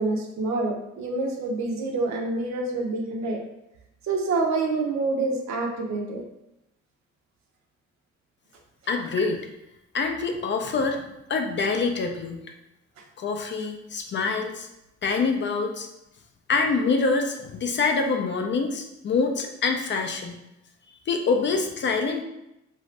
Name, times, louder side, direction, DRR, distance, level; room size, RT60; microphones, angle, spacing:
voice 1, 0.0-3.4 4.1-6.2, right 3 dB, 65° right, 1 dB, 0.7 m, -27 dB
voice 2, 8.9-9.4 9.9-11.0 11.3-12.5 13.2-14.7 15.0-15.9 16.5-20.4 21.1-22.2, left 4 dB, 40° left, 4 dB, 0.4 m, -25 dB
2.6 x 2.4 x 3.2 m, 0.88 s
cardioid pair, 90°, 30 cm